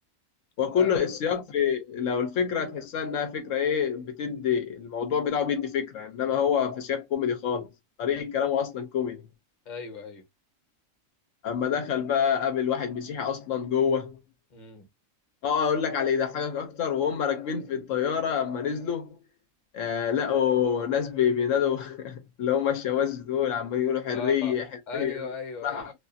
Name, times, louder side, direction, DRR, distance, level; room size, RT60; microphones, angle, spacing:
voice 1, 0.6-7.7 8.0-9.2 11.4-14.2 15.4-19.2 19.7-24.7 24.9-25.3 25.6-25.9, left 8 dB, 75° left, 0.9 m, -27 dB
voice 2, 9.6-10.2 14.5-14.9 24.1-24.6 24.9-25.9, left 4 dB, 40° left, 0.9 m, -37 dB
2.5 x 2.3 x 2.4 m
omnidirectional pair, 1.4 m